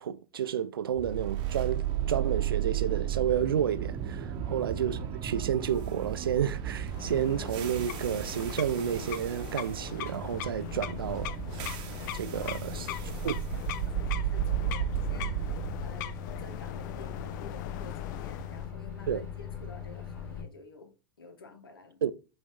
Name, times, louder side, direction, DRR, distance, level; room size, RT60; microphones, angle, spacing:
voice 1, 0.0-11.4 12.1-12.9 13.2-13.3 19.1-19.2 22.0-22.1, right 9 dB, 80° right, 0.4 m, -31 dB
sound 1, 1.0-19.1, right 11 dB, 40° right, 0.8 m, -34 dB
sound 2, 6.9-18.7, left 14 dB, 55° left, 0.4 m, -42 dB
Microwave oven, 10.1-20.4, left 8 dB, 20° left, 2.2 m, -40 dB
voice 2, 12.4-22.0, left 3 dB, 85° left, 1.1 m, -51 dB
5.2 x 2.7 x 3.5 m
hypercardioid pair, 95°, 12 cm